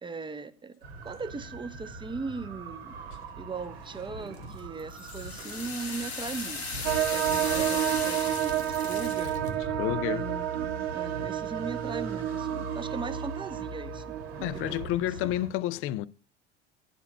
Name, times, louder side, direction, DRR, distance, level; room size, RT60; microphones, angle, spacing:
voice 1, 0.0-0.7 1.0-3.0 3.4-6.8 7.1-9.4 10.1-15.3, right 4 dB, 15° right, 0.9 m, -39 dB
sound 1, 0.8-15.5, right 2 dB, 75° right, 1.9 m, -41 dB
sound 2, 4.3-9.5, left 5 dB, 85° left, 1.8 m, -37 dB
sound 3, 6.8-14.8, right 12 dB, 45° right, 0.9 m, -30 dB
voice 2, 9.8-10.3 14.4-16.1, left 14 dB, 45° left, 0.5 m, -30 dB
10.5 x 5.3 x 6.4 m
figure-of-eight pair, 75°, 31 cm